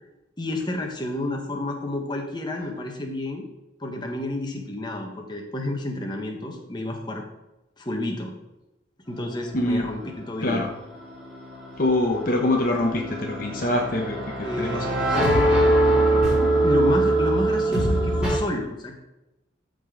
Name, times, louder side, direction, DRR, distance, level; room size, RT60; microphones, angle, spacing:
voice 1, 0.4-3.5 3.8-7.2 7.8-8.3 9.1-10.6 14.4-18.9, left 1 dB, 20° left, 1 dB, 1.4 m, -30 dB
voice 2, 9.5-9.9 10.4-10.7 11.8-14.2 14.6-14.7, left 1 dB, 45° left, 1 dB, 1.0 m, -24 dB
sound 1, 11.0-18.4, right 1 dB, 5° right, 3.3 m, -23 dB
14.0 x 5.3 x 3.9 m, 0.96 s
head